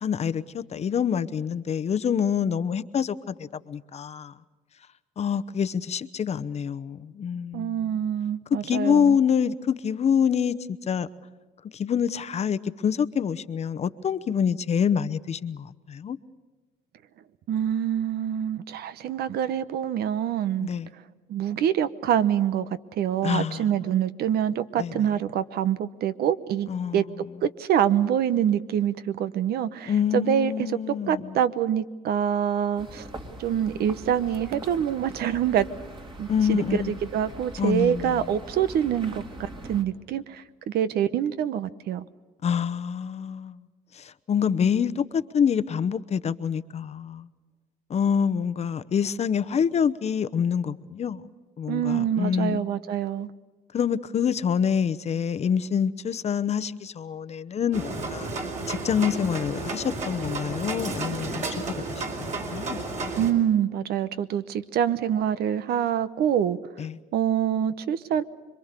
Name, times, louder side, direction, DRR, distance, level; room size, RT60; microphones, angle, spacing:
voice 1, 0.0-4.3 5.2-7.9 8.6-11.1 11.7-16.2 20.6-20.9 23.2-23.7 24.8-25.0 26.7-27.0 29.9-31.4 36.3-37.0 37.6-38.3 42.4-43.7 43.9-47.3 47.9-51.2 51.6-52.6 53.7-58.3 58.7-61.7 62.2-62.8 66.8-67.0, left 7 dB, 40° left, 0.9 m, -26 dB
voice 2, 7.5-9.2 17.5-20.7 21.3-27.0 27.4-30.8 31.1-33.1 33.4-35.7 36.2-42.0 51.7-53.3 63.2-66.6 67.1-68.2, right 9 dB, 70° right, 1.0 m, -25 dB
sound 1, 32.8-39.8, right 1 dB, 30° right, 2.6 m, -42 dB
sound 2, 57.7-63.3, right 3 dB, 45° right, 4.9 m, -32 dB
26.5 x 23.5 x 6.7 m
cardioid pair, 110°, 17 cm